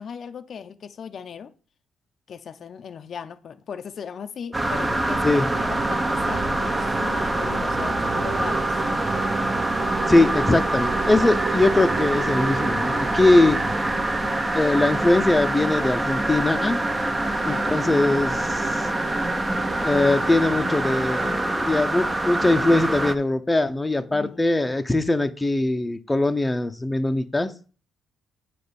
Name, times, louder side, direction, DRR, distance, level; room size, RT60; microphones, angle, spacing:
voice 1, 0.0-1.5 2.3-5.3 5.6-8.8 17.3-17.7 24.1-24.6, left 7 dB, 55° left, 0.7 m, -37 dB
sound 1, 4.5-23.1, right 1 dB, 20° right, 0.8 m, -25 dB
sound 2, 5.5-21.4, right 7 dB, 75° right, 0.8 m, -35 dB
voice 2, 10.1-13.6 14.5-16.8 17.5-18.9 19.8-27.5, left 2 dB, 15° left, 0.8 m, -21 dB
8.4 x 4.2 x 6.9 m
cardioid pair, 90°, 0 cm